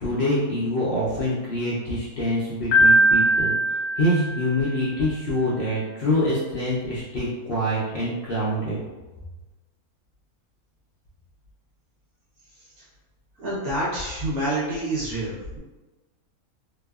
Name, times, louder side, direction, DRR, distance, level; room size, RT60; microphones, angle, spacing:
voice 1, 0.0-3.6 4.0-8.8, left 1 dB, 65° left, -8 dB, 0.5 m, -25 dB
Piano, 2.7-4.8, right 1 dB, 85° left, 1.1 m, -20 dB
voice 2, 13.4-15.6, right 1 dB, 75° right, -7 dB, 1.1 m, -27 dB
2.9 x 2.0 x 2.3 m, 1.2 s
omnidirectional pair, 1.6 m